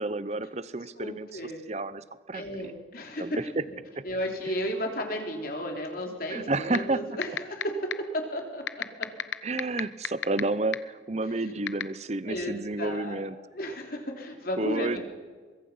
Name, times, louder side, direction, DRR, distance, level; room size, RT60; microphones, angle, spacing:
voice 1, 0.0-2.7 3.2-3.6 3.9-4.0 6.3-7.0 9.4-13.4 14.6-15.0, right 2 dB, 35° right, 15 dB, 0.8 m, -31 dB
voice 2, 1.0-1.6 2.3-3.4 3.7-3.8 4.0-7.7 8.3-8.8 12.3-13.2 13.5-15.0, equal, 50° left, 2 dB, 3.5 m, -34 dB
sound 1, 6.7-6.8 7.2-7.6 7.9-8.0 8.7-10.4 10.7-10.8 11.7-11.8, left 8 dB, 75° left, 0.8 m, -27 dB
23.5 x 22.0 x 5.6 m, 1.5 s
head